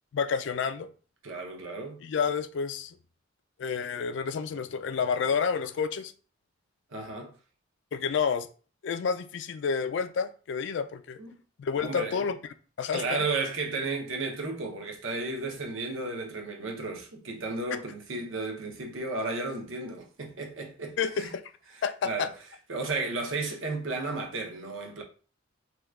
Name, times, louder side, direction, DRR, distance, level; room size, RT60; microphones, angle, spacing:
voice 1, 0.1-0.9 2.0-3.0 3.6-6.1 7.9-8.5 8.8-11.2 11.6-12.4 12.8-13.2 21.0-21.5 21.8-22.3, left 6 dB, 60° left, 0.3 m, -29 dB
voice 2, 1.2-2.0 6.9-7.3 11.2-11.3 11.8-12.3 12.9-21.3 22.0-22.3 22.7-25.0, right 3 dB, 75° right, 0.7 m, -33 dB
2.8 x 2.2 x 3.5 m
head